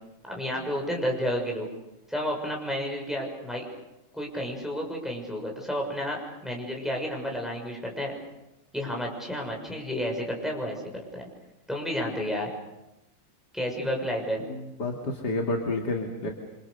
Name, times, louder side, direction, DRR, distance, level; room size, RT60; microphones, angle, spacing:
voice 1, 0.2-1.6 2.1-3.6 4.1-8.1 8.7-11.2 11.7-12.5 13.5-14.4, equal, ahead, 0 dB, 6.8 m, -31 dB
voice 2, 14.5-16.3, left 2 dB, 50° left, 2 dB, 3.0 m, -30 dB
29.0 x 26.5 x 6.8 m, 0.91 s
omnidirectional pair, 2.3 m